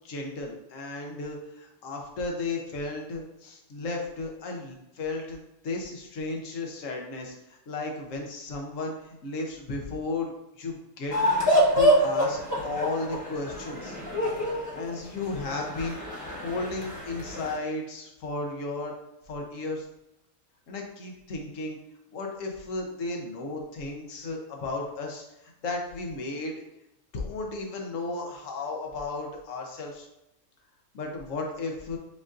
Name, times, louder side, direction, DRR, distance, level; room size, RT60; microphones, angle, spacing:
voice 1, 0.0-10.3 10.6-11.2 11.5-14.0 14.7-16.0 16.4-18.9 19.3-19.9 20.7-21.8 22.1-26.6 27.1-30.1 30.9-32.0, left 3 dB, 75° left, 1 dB, 1.2 m, -34 dB
sound 1, 11.1-17.5, equal, 15° left, 1.0 m, -26 dB
7.3 x 2.6 x 2.5 m, 0.90 s
omnidirectional pair, 1.4 m